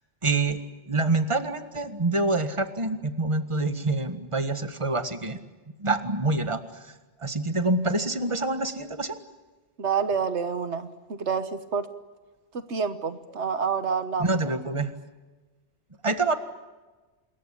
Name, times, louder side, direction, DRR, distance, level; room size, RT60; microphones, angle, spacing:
voice 1, 0.2-0.6 0.9-5.4 5.8-6.9 7.2-9.2 14.2-14.9 16.0-16.4, right 2 dB, 25° right, 9 dB, 1.7 m, -26 dB
voice 2, 9.8-11.9 12.7-14.4, right 6 dB, 75° right, 11 dB, 1.5 m, -28 dB
27.5 x 22.0 x 8.5 m, 1.2 s
omnidirectional pair, 1.2 m